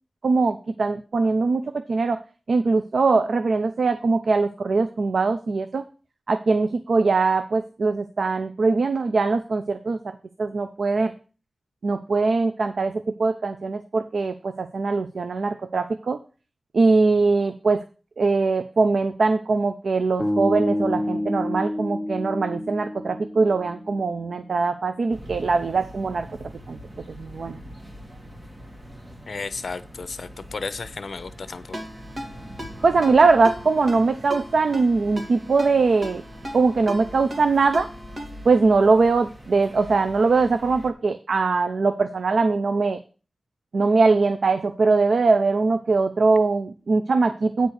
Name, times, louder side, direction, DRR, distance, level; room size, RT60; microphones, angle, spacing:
voice 1, 0.2-2.2 2.5-5.8 6.3-11.1 11.8-16.2 16.7-17.8 18.2-26.3 26.7-26.8 27.1-27.6 32.8-36.2 36.5-37.9 38.4-43.0 43.7-47.7, right 4 dB, 85° right, 0.6 m, -21 dB
sound 1, 20.2-24.4, left 1 dB, 10° left, 1.3 m, -28 dB
sound 2, 25.1-40.9, equal, 30° right, 1.7 m, -43 dB
voice 2, 29.3-31.8, left 4 dB, 75° left, 0.7 m, -33 dB
Ringtone, 31.7-38.6, equal, 45° right, 2.5 m, -38 dB
9.2 x 4.4 x 6.5 m
wide cardioid pair, 95°, 0 cm